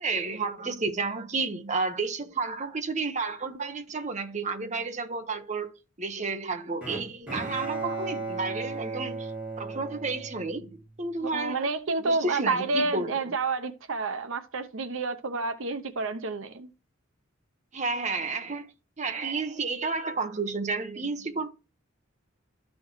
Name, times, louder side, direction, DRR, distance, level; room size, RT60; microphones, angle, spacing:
voice 1, 0.0-9.3 9.6-11.8 12.0-13.3 17.7-18.7 19.0-21.5, right 3 dB, 35° right, 0.8 m, -31 dB
Bowed string instrument, 6.8-11.0, right 3 dB, 5° right, 3.6 m, -35 dB
voice 2, 11.2-16.7, right 3 dB, 70° right, 0.7 m, -29 dB
13.0 x 4.3 x 3.1 m
head